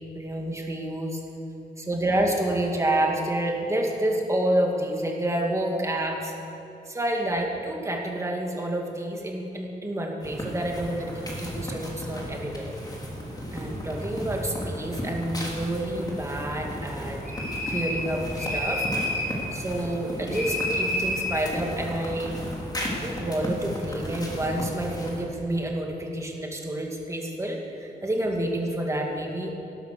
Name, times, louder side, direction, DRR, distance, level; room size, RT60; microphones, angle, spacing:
voice 1, 0.1-1.2 1.8-6.3 6.9-12.7 13.5-17.2 17.7-18.9 19.5-22.3 23.0-29.5, right 1 dB, 15° right, 0 dB, 2.1 m, -28 dB
sound 1, 10.2-25.2, equal, 25° left, 2.8 m, -35 dB
sound 2, 17.2-18.1 18.4-19.3 20.3-21.4, left 1 dB, 65° left, 4.3 m, -29 dB
18.0 x 11.5 x 6.7 m, 3.0 s
wide cardioid pair, 155°, 17 cm